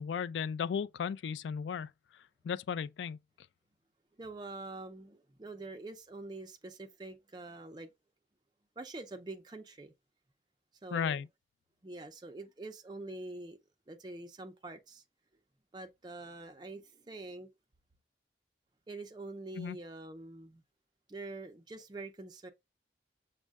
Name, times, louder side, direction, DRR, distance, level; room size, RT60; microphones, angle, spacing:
voice 1, 0.0-1.9 2.4-3.2 10.9-11.3 19.6-19.8, left 7 dB, 85° left, 0.3 m, -35 dB
voice 2, 4.2-7.9 8.8-9.9 10.8-11.2 11.8-13.6 13.9-15.0 15.7-17.5 18.9-20.6 21.1-22.5, right 2 dB, 25° right, 0.5 m, -45 dB
6.3 x 2.1 x 3.4 m
head